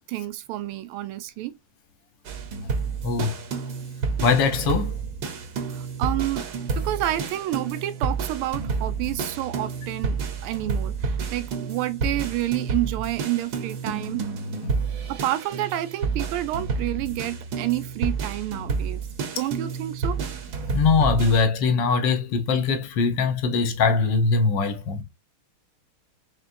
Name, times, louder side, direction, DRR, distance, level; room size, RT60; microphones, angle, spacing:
voice 1, 0.1-1.5 5.7-6.5 6.8-14.3 15.1-19.0 19.4-20.2, right 14 dB, 85° right, 1.5 m, -29 dB
sound 1, 2.2-21.4, right 4 dB, 60° right, 1.2 m, -30 dB
voice 2, 3.0-3.4 4.2-5.0 14.6-14.7 20.7-25.0, left 4 dB, 65° left, 1.3 m, -22 dB
4.3 x 3.4 x 2.5 m
omnidirectional pair, 2.4 m